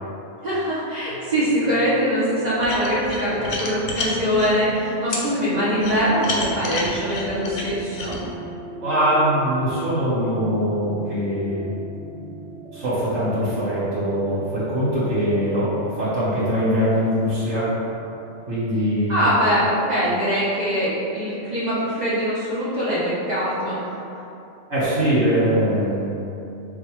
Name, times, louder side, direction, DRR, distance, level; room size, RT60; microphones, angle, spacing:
voice 1, 0.4-8.2 19.1-23.8, equal, 45° right, -10 dB, 0.7 m, -22 dB
sound 1, 1.1-20.6, right 3 dB, 75° left, 1.0 m, -39 dB
sound 2, 2.6-4.5 5.1-5.2 5.8-8.2, left 3 dB, 60° left, 0.6 m, -29 dB
voice 2, 8.8-11.7 12.7-17.8 18.5-19.2 24.7-26.2, equal, 80° right, -12 dB, 1.4 m, -22 dB
4.8 x 2.2 x 3.0 m, 2.7 s
omnidirectional pair, 1.3 m